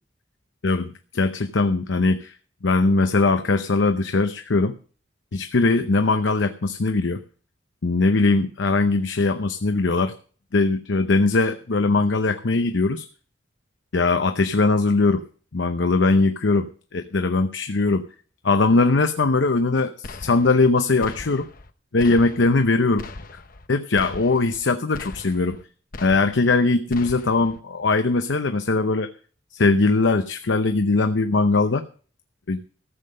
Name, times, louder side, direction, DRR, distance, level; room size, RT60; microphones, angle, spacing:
voice 1, 0.6-2.3 2.6-4.7 5.3-7.2 7.8-10.1 10.5-13.0 13.9-15.2 15.5-18.0 18.4-21.5 21.9-23.1 23.7-25.6 26.0-29.1 29.5-31.9 32.5-32.6, left 3 dB, 75° left, 8 dB, 0.8 m, -20 dB
sound 1, 20.0-20.7 21.0-21.7 22.0-22.7 23.0-23.7 24.0-24.6 24.9-25.6 25.9-26.6 26.9-27.6, left 3 dB, 50° left, 0.9 m, -40 dB
14.5 x 7.6 x 6.6 m, 0.43 s
head